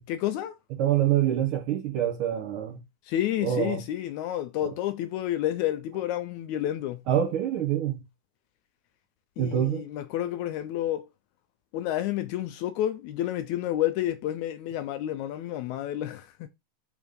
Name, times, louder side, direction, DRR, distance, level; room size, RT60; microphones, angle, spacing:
voice 1, 0.1-0.5 3.1-7.1 9.4-11.1 11.7-16.5, left 12 dB, 80° left, 1.8 m, -30 dB
voice 2, 0.8-2.8 3.4-3.8 7.1-8.0 9.4-9.8, right 11 dB, 75° right, 1.2 m, -25 dB
5.1 x 3.6 x 5.1 m
omnidirectional pair, 3.6 m